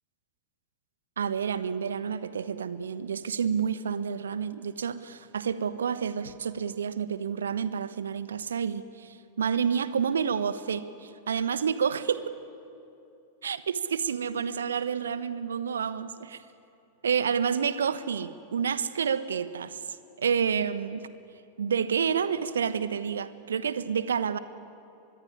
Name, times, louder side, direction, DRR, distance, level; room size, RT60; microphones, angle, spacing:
voice 1, 1.2-12.3 13.4-16.4 17.0-19.8 20.2-21.1 21.6-24.4, right 7 dB, 70° right, 14 dB, 1.2 m, -29 dB
24.5 x 21.5 x 10.0 m, 2.6 s
figure-of-eight pair, 90°, 0 cm